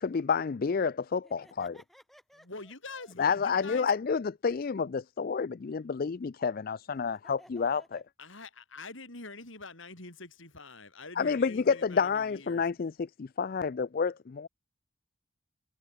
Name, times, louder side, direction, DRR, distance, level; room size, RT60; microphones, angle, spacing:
voice 1, 0.0-1.7 3.2-7.8 11.2-14.5, left 5 dB, 45° left, 0.4 m, -29 dB
voice 2, 1.2-3.6 6.9-8.0, equal, ahead, 6.6 m, -58 dB
voice 3, 2.5-3.9 8.2-12.6, left 3 dB, 70° left, 5.7 m, -45 dB
head